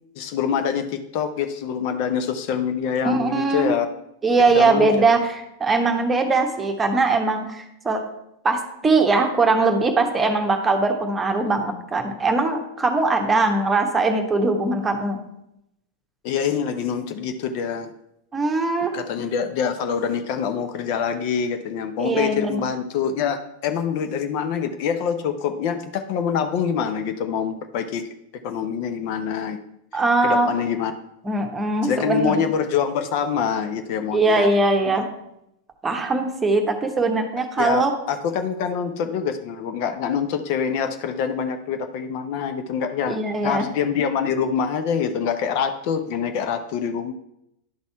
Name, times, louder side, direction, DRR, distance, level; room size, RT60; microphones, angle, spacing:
voice 1, 0.2-3.9 4.5-5.1 16.2-17.9 18.9-28.1 28.4-29.6 30.2-30.9 31.8-34.5 34.9-35.0 37.6-43.2 43.4-47.1, left 7 dB, 45° left, 7 dB, 0.6 m, -25 dB
voice 2, 3.0-3.7 4.2-8.0 8.4-15.2 18.3-18.9 22.0-22.6 29.9-30.5 31.2-32.3 34.1-35.1 35.8-37.9 43.1-43.7, right 3 dB, 15° right, 4 dB, 1.1 m, -21 dB
11.0 x 4.1 x 4.5 m, 0.81 s
figure-of-eight pair, 90°, 0 cm